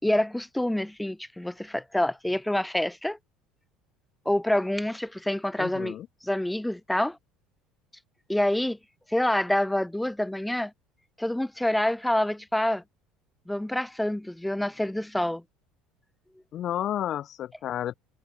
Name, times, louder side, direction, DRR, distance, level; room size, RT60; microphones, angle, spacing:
voice 1, 0.0-3.2 4.2-6.0 6.2-7.2 8.3-8.8 9.1-10.7 11.2-12.8 13.5-15.4, left 1 dB, 5° left, 2.9 m, -27 dB
voice 2, 5.6-6.1 16.5-17.9, left 11 dB, 50° left, 5.0 m, -31 dB
hypercardioid pair, 65°, 0 cm